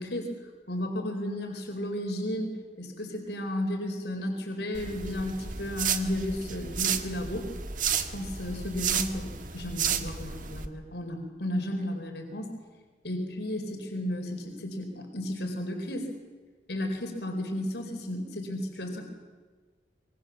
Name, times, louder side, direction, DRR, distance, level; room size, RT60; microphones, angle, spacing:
voice 1, 0.0-7.5 8.1-12.5 13.0-16.1 16.7-19.0, left 1 dB, 70° left, 3 dB, 4.3 m, -33 dB
sound 1, 4.7-10.7, right 7 dB, 45° right, 1.6 m, -32 dB
26.0 x 23.0 x 7.3 m, 1.4 s
head